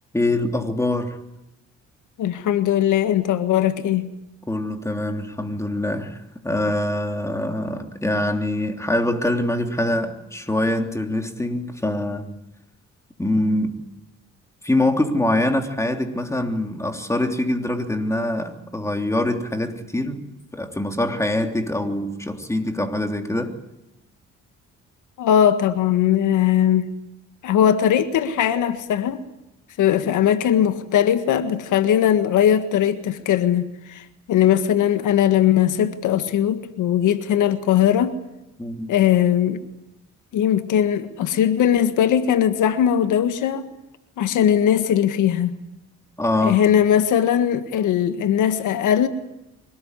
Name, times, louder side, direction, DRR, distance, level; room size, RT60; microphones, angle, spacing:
voice 1, 0.1-1.2 4.5-12.3 13.2-13.8 14.6-20.2 20.5-23.5 38.6-38.9 46.2-46.6, left 1 dB, 10° left, 3.3 m, -24 dB
voice 2, 2.2-4.1 25.2-26.9 27.4-29.2 29.8-38.2 38.9-39.6 40.3-43.7 44.2-45.6 46.4-49.1, left 10 dB, 80° left, 1.7 m, -19 dB
24.5 x 19.0 x 9.7 m
cardioid pair, 90°, 30 cm